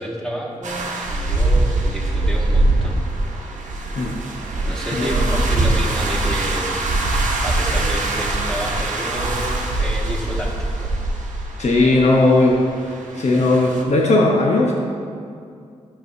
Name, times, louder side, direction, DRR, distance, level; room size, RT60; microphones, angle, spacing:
voice 1, 0.0-3.0 4.7-6.8 7.4-10.9, equal, 5° left, -4 dB, 2.0 m, -30 dB
sound 1, 0.6-13.8, right 2 dB, 75° right, 1.0 m, -22 dB
voice 2, 5.0-5.3 11.6-12.6 13.1-14.8, left 2 dB, 60° left, -1 dB, 1.0 m, -17 dB
11.5 x 6.3 x 2.7 m, 2.4 s
cardioid pair, 50°, 13 cm